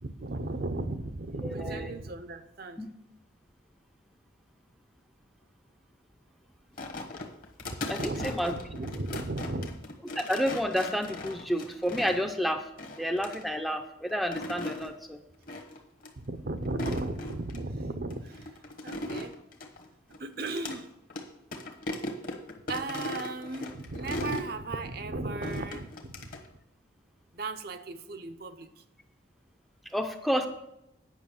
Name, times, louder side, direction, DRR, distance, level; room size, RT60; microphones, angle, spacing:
voice 1, 0.0-2.8 7.6-9.8 16.2-18.5 18.8-19.4 20.2-20.9 22.7-26.3 27.3-28.8, right 2 dB, 50° right, 10 dB, 0.7 m, -36 dB
voice 2, 1.4-1.9 2.8-2.9 7.9-8.6 10.2-12.7 13.0-15.2 29.9-30.5, equal, ahead, 5 dB, 0.5 m, -30 dB
sound 1, 6.8-12.3 12.8-13.4 14.1-14.9 15.5-15.8 16.0-16.1 16.6-17.6 18.1-20.8 21.1-21.2 21.5-24.5 25.4-26.5, left 2 dB, 45° left, 1.2 m, -38 dB
9.3 x 5.8 x 7.0 m, 0.84 s
head